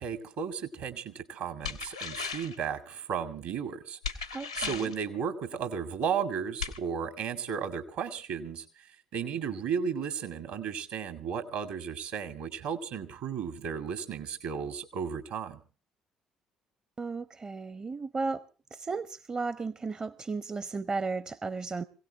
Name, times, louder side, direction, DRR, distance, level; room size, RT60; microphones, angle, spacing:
voice 1, 0.0-4.3 4.6-15.6, right 7 dB, 65° right, 8 dB, 2.0 m, -34 dB
sound 1, 1.6-2.6 4.0-5.0 6.6-6.8, left 6 dB, 90° left, 1.0 m, -36 dB
voice 2, 4.3-4.9 17.0-18.4 18.7-21.8, right 4 dB, 30° right, 16 dB, 0.7 m, -34 dB
26.0 x 17.0 x 2.9 m, 0.36 s
figure-of-eight pair, 50°, 3 cm